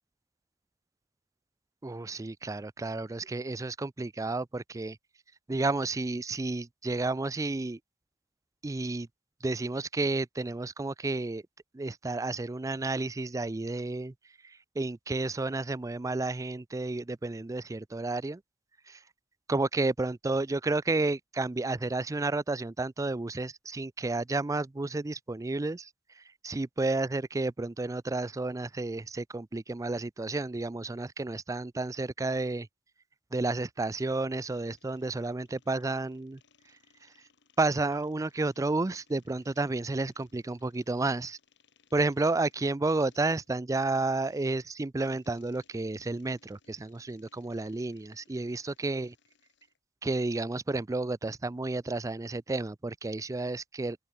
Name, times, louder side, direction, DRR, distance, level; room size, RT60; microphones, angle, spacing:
voice 1, 1.8-5.0 5.5-7.8 8.6-9.1 9.4-11.4 11.7-14.1 14.4-18.4 18.9-19.0 19.5-25.9 26.2-32.7 33.3-36.4 37.6-41.4 41.9-49.1 50.0-54.0, right 2 dB, 15° right, 0.4 m, -31 dB
sound 1, 34.4-49.8, left 6 dB, 65° left, 4.6 m, -66 dB
open air
head